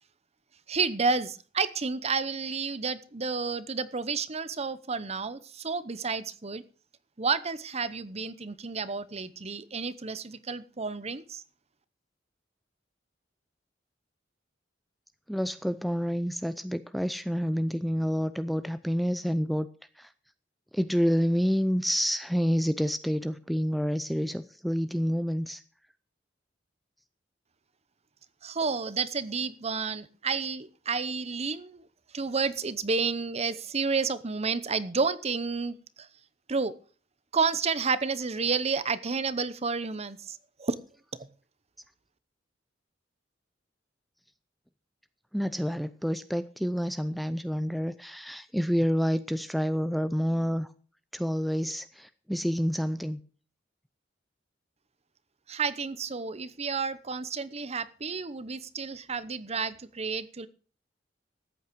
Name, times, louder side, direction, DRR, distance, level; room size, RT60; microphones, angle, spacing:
voice 1, 0.7-6.6 7.2-11.4 28.4-31.8 32.1-35.8 36.5-36.7 37.3-40.8 55.5-60.5, right 4 dB, 35° right, 16 dB, 0.8 m, -30 dB
voice 2, 15.3-19.7 20.0-20.1 20.7-25.6 45.3-50.7 51.1-53.2, equal, ahead, 12 dB, 0.5 m, -28 dB
13.5 x 8.6 x 6.2 m, 0.40 s
head